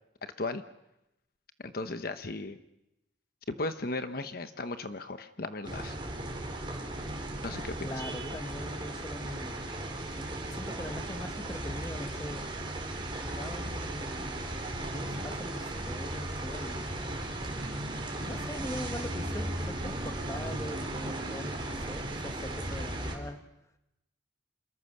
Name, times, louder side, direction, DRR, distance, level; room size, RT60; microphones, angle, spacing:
voice 1, 1.6-2.6 3.5-6.0 7.4-8.0, left 2 dB, 50° left, 9 dB, 1.0 m, -36 dB
sound 1, 5.6-23.2, right 1 dB, 25° right, 4.2 m, -36 dB
voice 2, 7.8-9.6 10.2-12.5 13.2-14.5 14.9-16.9 18.2-23.4, left 1 dB, 15° left, 7 dB, 1.4 m, -42 dB
28.0 x 23.0 x 6.7 m, 0.91 s
head